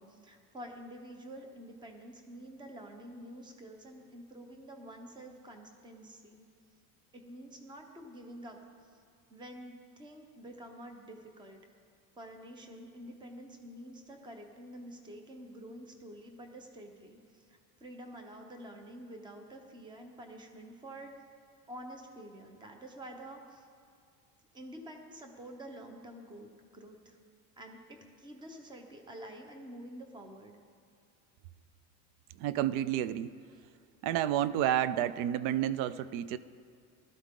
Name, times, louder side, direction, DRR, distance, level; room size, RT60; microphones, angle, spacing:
voice 1, 0.0-6.4 7.1-9.0 9.3-11.6 12.2-21.1 21.7-23.7 24.5-27.2 27.6-30.6, right 1 dB, 10° right, 4 dB, 0.9 m, -48 dB
voice 2, 32.4-33.3 34.0-36.4, right 11 dB, 50° right, 16 dB, 0.4 m, -30 dB
19.0 x 13.0 x 3.7 m, 2.2 s
cardioid pair, 175°, 42 cm